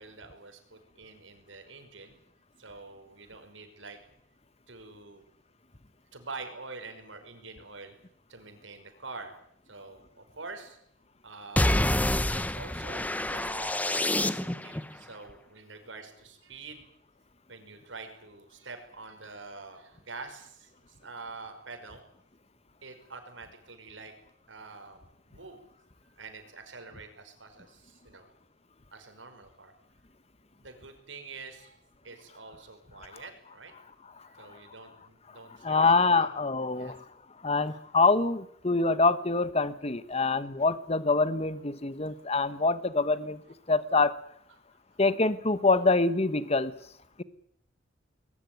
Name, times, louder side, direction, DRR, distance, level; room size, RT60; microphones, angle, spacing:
voice 1, 0.0-2.2 2.6-4.0 4.7-5.3 6.1-7.9 8.3-9.3 9.7-10.8 11.2-11.7 12.3-16.9 17.5-22.0 22.8-24.1 24.5-25.7 26.2-28.3 28.9-29.7 30.6-31.8 32.0-33.7 34.3-36.3 36.8-36.9 40.1-40.2 42.1-42.2, right 3 dB, 90° right, 6 dB, 5.6 m, -46 dB
sound 1, 11.6-14.8, left 1 dB, 10° left, 1.1 m, -27 dB
voice 2, 35.6-37.0 37.4-43.4 43.7-44.2 45.0-46.7, left 3 dB, 35° left, 14 dB, 1.3 m, -25 dB
21.5 x 21.0 x 9.4 m, 0.69 s
head